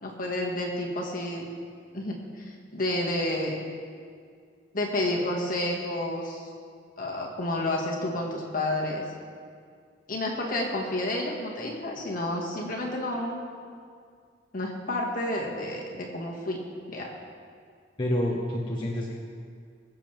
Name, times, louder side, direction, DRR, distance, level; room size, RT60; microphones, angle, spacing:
voice 1, 0.0-1.4 1.9-3.6 4.7-6.5 7.0-9.0 10.1-13.4 14.5-16.6 16.9-17.1, left 1 dB, 50° left, -1 dB, 1.9 m, -30 dB
voice 2, 18.0-19.1, left 1 dB, 25° left, -4 dB, 1.1 m, -28 dB
22.5 x 7.5 x 3.5 m, 2.1 s
head